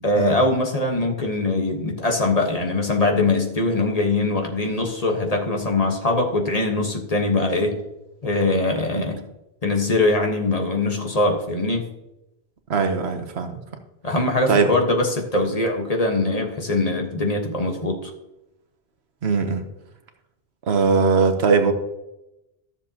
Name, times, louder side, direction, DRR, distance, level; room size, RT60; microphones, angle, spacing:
voice 1, 0.0-7.8 8.2-9.2 9.6-11.9 14.0-18.1, left 2 dB, 35° left, 2 dB, 1.3 m, -22 dB
voice 2, 12.7-13.6 14.5-14.7 19.2-19.6 20.7-21.7, right 5 dB, 80° right, 7 dB, 1.2 m, -20 dB
13.5 x 7.0 x 2.8 m, 0.91 s
omnidirectional pair, 1.1 m